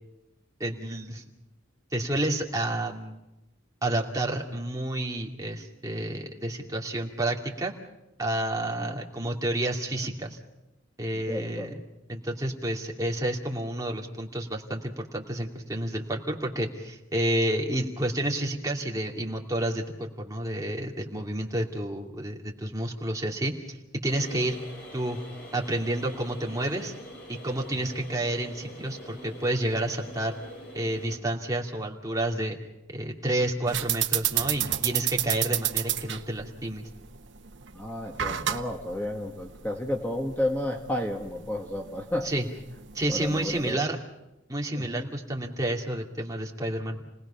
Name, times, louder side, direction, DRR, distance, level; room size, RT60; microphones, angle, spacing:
voice 1, 0.6-1.2 1.9-3.2 3.8-7.7 8.2-10.4 11.0-11.7 12.1-23.8 24.0-24.6 24.9-25.2 25.5-26.9 27.3-30.3 30.7-32.6 32.9-36.9 42.2-42.5 42.9-44.0 44.5-47.0, right 1 dB, 15° right, 0 dB, 2.5 m, -30 dB
voice 2, 11.3-11.8 37.7-42.3 43.1-44.0 44.8-45.0, left 1 dB, 10° left, 1 dB, 1.5 m, -32 dB
sound 1, 24.1-31.2, equal, 50° left, 4.7 m, -44 dB
sound 2, 33.7-43.7, right 11 dB, 60° right, 1.1 m, -32 dB
30.0 x 19.5 x 5.8 m, 0.95 s
head